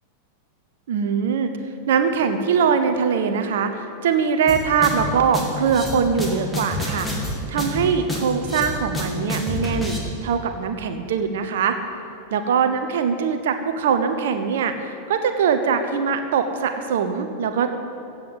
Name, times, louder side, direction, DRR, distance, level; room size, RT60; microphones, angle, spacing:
voice 1, 0.9-1.5 1.9-7.1 7.5-11.8 12.3-17.7, right 6 dB, 55° right, 8 dB, 0.9 m, -22 dB
sound 1, 4.5-10.0, left 1 dB, 5° left, 2.5 m, -28 dB
15.5 x 8.1 x 7.9 m, 2.8 s
figure-of-eight pair, 90°, 0 cm